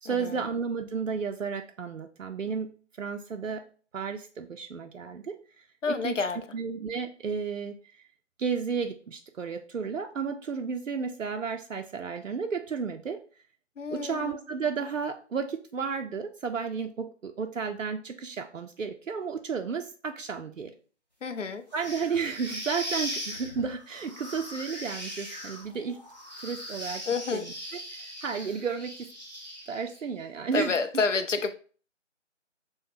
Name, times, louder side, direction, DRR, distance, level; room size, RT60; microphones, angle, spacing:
voice 1, 0.0-3.6 3.9-6.2 6.5-7.8 8.4-13.2 13.9-20.7 21.7-26.0 26.4-27.0 27.3-27.5 27.9-29.1 29.7-31.0, right 5 dB, 85° right, 0.5 m, -33 dB
voice 2, 5.8-6.4 13.8-14.4 21.2-21.6 27.1-27.5 30.5-31.5, left 4 dB, 75° left, 0.6 m, -29 dB
sound 1, 21.7-30.0, equal, 35° left, 0.8 m, -39 dB
6.1 x 2.1 x 2.6 m
figure-of-eight pair, 165°, 37 cm